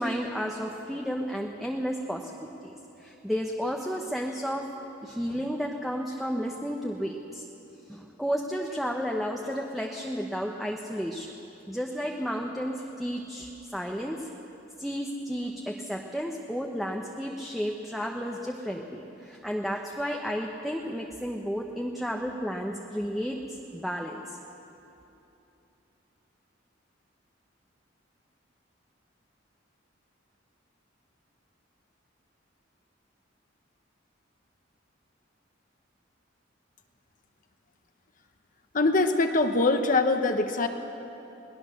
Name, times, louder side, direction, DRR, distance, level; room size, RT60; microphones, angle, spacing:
voice 1, 0.0-2.7 3.0-4.7 5.0-7.4 7.9-11.3 11.7-14.3 14.8-24.4, equal, ahead, 0 dB, 0.9 m, -32 dB
voice 2, 38.7-40.7, left 3 dB, 45° left, 6 dB, 1.1 m, -23 dB
22.0 x 18.5 x 6.5 m, 3.0 s
head